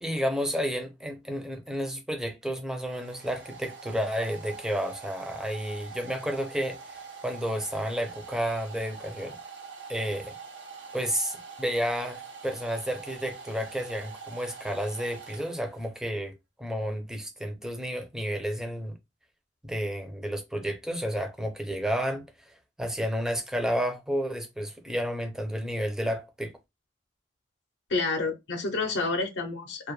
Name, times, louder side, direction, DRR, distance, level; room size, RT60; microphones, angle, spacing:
voice 1, 0.0-7.0 7.2-9.4 9.9-10.3 10.9-16.3 16.6-18.9 19.6-22.2 22.8-26.5, equal, 5° right, 0.4 m, -31 dB
Domestic sounds home sounds, 2.2-15.9, right 5 dB, 85° right, 0.7 m, -44 dB
voice 2, 27.9-29.9, left 3 dB, 70° left, 0.5 m, -29 dB
2.2 x 2.0 x 3.0 m
head